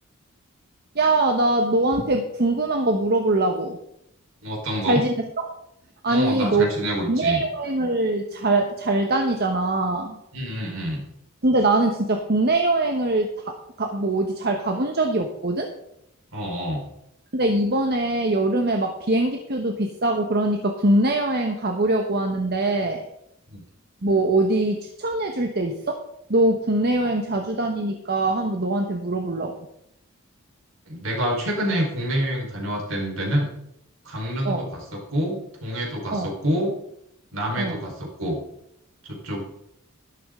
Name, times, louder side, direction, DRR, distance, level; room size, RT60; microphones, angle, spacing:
voice 1, 0.9-3.8 4.9-5.5 6.0-6.7 7.1-10.2 11.4-15.7 17.3-23.1 24.0-26.0 26.3-29.5 34.4-34.6 36.1-36.3 37.6-37.8, right 2 dB, 50° right, 3 dB, 1.2 m, -22 dB
voice 2, 4.4-5.0 6.1-7.4 10.3-11.0 16.3-16.9 23.5-23.6 27.0-27.1 30.9-33.5 34.0-36.7 37.3-38.4 39.0-39.4, equal, 70° right, 0 dB, 4.3 m, -27 dB
12.5 x 12.0 x 3.8 m, 0.78 s
head